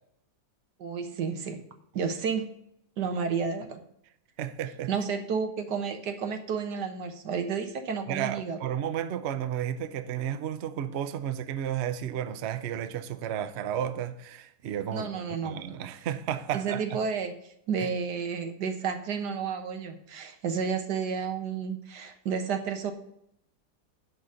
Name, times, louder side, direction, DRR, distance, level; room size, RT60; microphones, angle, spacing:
voice 1, 0.8-1.7 1.9-2.5 3.0-3.8 4.9-8.6 14.9-15.6 16.5-17.4 17.7-22.9, right 6 dB, 90° right, 1.8 m, -31 dB
voice 2, 4.4-4.9 8.1-17.0 17.8-17.9, right 10 dB, 55° right, 0.8 m, -33 dB
11.0 x 4.1 x 7.6 m
omnidirectional pair, 1.7 m